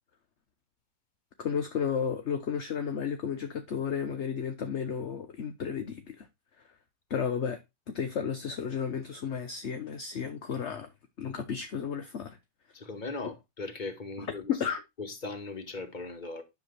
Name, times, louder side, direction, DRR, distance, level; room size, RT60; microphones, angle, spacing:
voice 1, 1.4-6.3 7.1-7.6 7.9-10.9 11.2-12.4 13.2-13.3 14.2-14.8, left 7 dB, 45° left, 1.0 m, -33 dB
voice 2, 12.7-14.5 15.0-16.4, left 3 dB, 25° left, 1.6 m, -38 dB
10.5 x 3.5 x 6.9 m
omnidirectional pair, 2.0 m